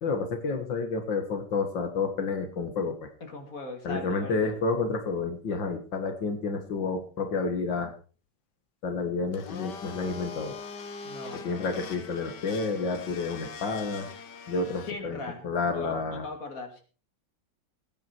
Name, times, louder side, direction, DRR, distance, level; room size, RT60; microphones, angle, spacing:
voice 1, 0.0-3.1 3.8-7.9 8.8-10.6 11.3-14.1 14.5-16.3, left 4 dB, 85° left, 6 dB, 2.4 m, -30 dB
voice 2, 3.2-4.6 11.0-11.6 14.9-16.8, left 3 dB, 50° left, 5 dB, 2.9 m, -40 dB
Domestic sounds home sounds, 9.3-14.9, left 5 dB, 70° left, 1.9 m, -42 dB
19.0 x 9.4 x 4.5 m, 0.37 s
omnidirectional pair, 2.0 m